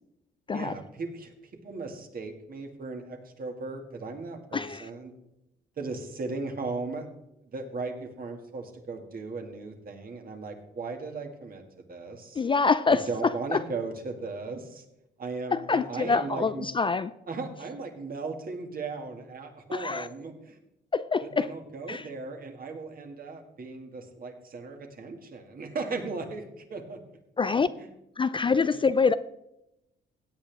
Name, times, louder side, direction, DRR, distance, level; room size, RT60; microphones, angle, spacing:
voice 1, 0.5-1.3 1.6-5.1 5.8-7.1 7.5-11.6 11.9-12.4 12.9-14.8 15.2-16.7 17.3-20.6 21.2-27.0, right 3 dB, 45° right, 2.2 m, -37 dB
voice 2, 4.5-4.9 12.4-13.7 15.5-17.1 19.7-20.1 20.9-21.5 21.9-22.1 27.4-27.7 28.2-29.1, left 4 dB, 25° left, 0.4 m, -25 dB
16.5 x 8.6 x 3.5 m
cardioid pair, 90°, 20 cm